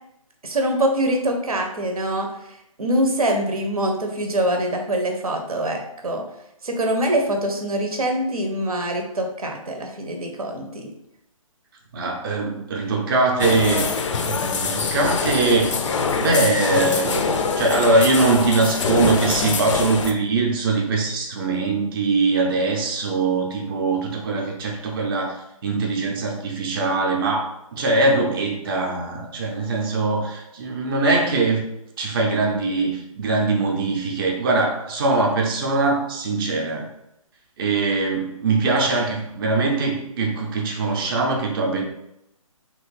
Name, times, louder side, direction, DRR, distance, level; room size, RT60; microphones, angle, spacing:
voice 1, 0.4-2.3 2.8-6.2 6.6-10.9, right 1 dB, 85° right, 3 dB, 0.8 m, -24 dB
voice 2, 11.9-15.8 16.1-25.4 25.6-31.6 32.0-36.9 37.6-41.8, right 3 dB, 40° right, 0 dB, 0.5 m, -22 dB
sound 1, 13.4-20.1, left 5 dB, 60° left, 0.4 m, -24 dB
2.9 x 2.5 x 3.2 m, 0.83 s
figure-of-eight pair, 145°, 18 cm